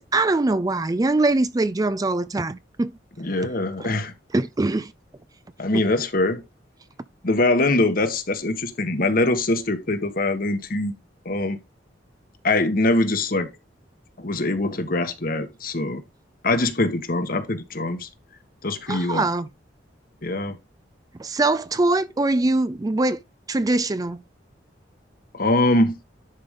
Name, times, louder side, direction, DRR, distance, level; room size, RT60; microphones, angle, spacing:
voice 1, 0.0-2.9 3.8-3.9 4.3-4.9 5.7-5.8 18.9-19.5 21.2-23.2 23.5-24.2, right 2 dB, 20° right, 0.4 m, -22 dB
voice 2, 3.2-4.1 5.6-6.4 7.2-10.9 11.2-11.6 12.4-13.5 14.2-16.0 16.4-18.1 18.6-19.3 20.2-20.6 25.3-25.9, left 2 dB, 50° left, 1.4 m, -23 dB
10.5 x 5.2 x 3.7 m
head